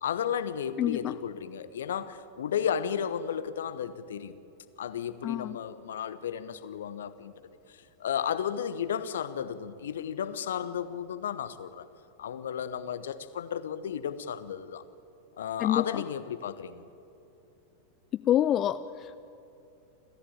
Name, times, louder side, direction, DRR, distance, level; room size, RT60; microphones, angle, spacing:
voice 1, 0.0-4.4 4.8-7.3 7.7-11.9 12.2-14.8 15.4-16.9, left 8 dB, 60° left, 13 dB, 1.2 m, -33 dB
voice 2, 0.8-1.1 5.2-5.6 15.6-16.0 18.1-19.2, left 11 dB, 30° left, 12 dB, 0.6 m, -27 dB
30.0 x 14.5 x 8.9 m, 2.8 s
figure-of-eight pair, 90°, 0 cm